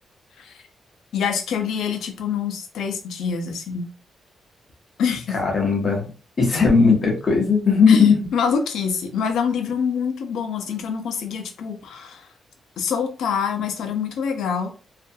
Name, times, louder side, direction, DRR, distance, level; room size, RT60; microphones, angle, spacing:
voice 1, 1.1-3.9 5.0-5.4 6.5-6.6 7.9-12.3 12.8-14.7, left 6 dB, 90° left, 6 dB, 0.5 m, -26 dB
voice 2, 5.3-6.1 6.4-8.2, left 5 dB, 40° left, 0 dB, 0.9 m, -17 dB
2.5 x 2.2 x 2.6 m, 0.35 s
wide cardioid pair, 145°, 0 cm